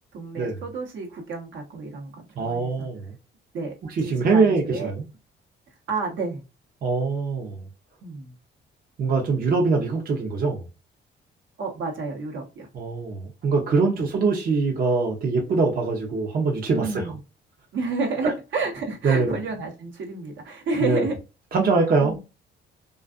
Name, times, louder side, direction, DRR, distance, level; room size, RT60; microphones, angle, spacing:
voice 1, 0.1-2.9 3.5-4.9 5.9-6.4 8.0-8.3 11.6-12.7 13.8-14.1 16.7-17.2 17.7-21.2 22.0-22.2, right 3 dB, 70° right, 1.0 m, -30 dB
voice 2, 2.4-3.1 4.0-5.0 6.8-7.6 9.0-10.7 12.7-17.0 18.2-18.3 19.0-19.4 20.8-21.1 21.5-22.1, right 4 dB, 50° right, 0.7 m, -23 dB
2.4 x 2.4 x 2.3 m
cardioid pair, 90°, 20 cm